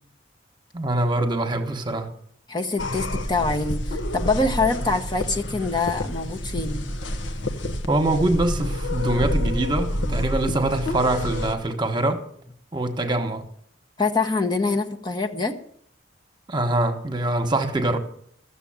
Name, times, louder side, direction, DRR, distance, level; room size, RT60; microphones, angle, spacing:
voice 1, 0.7-2.1 7.9-12.3 12.7-13.4 16.5-18.0, right 2 dB, 25° right, 1.3 m, -24 dB
voice 2, 2.5-6.8 14.0-15.6, left 3 dB, 25° left, 0.9 m, -25 dB
sound 1, 2.8-11.5, left 1 dB, 90° left, 1.3 m, -28 dB
14.0 x 7.1 x 8.8 m
head